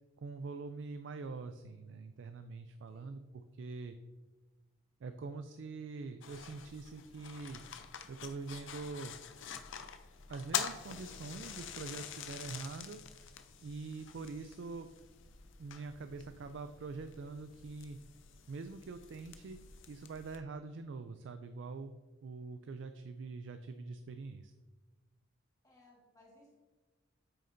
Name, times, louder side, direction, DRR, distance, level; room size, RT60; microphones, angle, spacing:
voice 1, 0.2-4.0 5.0-7.7 8.1-9.2 10.3-13.0 13.6-14.9 15.6-18.0 18.5-19.6 19.9-21.9 22.2-24.5, right 4 dB, 60° right, 9 dB, 0.3 m, -44 dB
voice 2, 2.9-3.2 25.6-26.6, left 1 dB, 20° left, -4 dB, 1.7 m, -63 dB
sound 1, 6.2-20.4, left 8 dB, 65° left, 0.5 m, -46 dB
8.4 x 6.5 x 2.6 m, 1.3 s
head